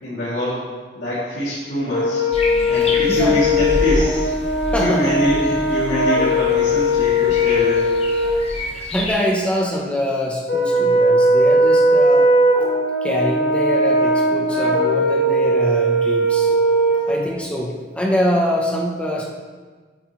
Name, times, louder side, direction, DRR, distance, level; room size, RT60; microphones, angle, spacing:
voice 1, 0.0-0.6 0.9-2.2 2.7-4.2 4.8-7.9 17.2-17.3, left 1 dB, 80° left, -11 dB, 2.6 m, -24 dB
Brass instrument, 1.9-8.4 10.5-17.1, equal, 60° left, 2.1 m, -18 dB
sound 1, 2.3-9.1, left 1 dB, 35° left, 1.1 m, -29 dB
voice 2, 3.1-3.4 4.7-5.2 8.6-12.3 13.0-16.5 17.1-19.3, equal, 5° left, -2 dB, 0.8 m, -24 dB
8.9 x 8.6 x 3.1 m, 1.4 s
head